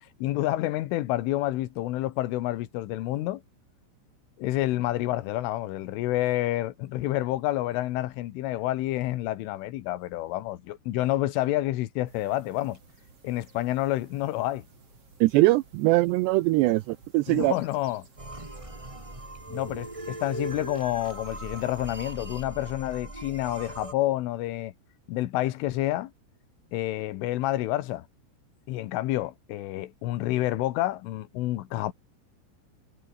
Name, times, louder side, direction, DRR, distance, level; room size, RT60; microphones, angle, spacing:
voice 1, 0.2-3.4 4.4-12.8 13.2-14.6 17.3-18.1 19.5-24.7 25.1-26.1 26.7-28.1 28.7-31.9, left 15 dB, 90° left, 3.8 m, -29 dB
sound 1, 12.0-22.1, right 4 dB, 30° right, 5.2 m, -56 dB
voice 2, 15.2-17.5, right 20 dB, 80° right, 2.6 m, -22 dB
sound 2, 18.2-23.9, right 2 dB, 15° right, 1.0 m, -39 dB
omnidirectional pair, 5.5 m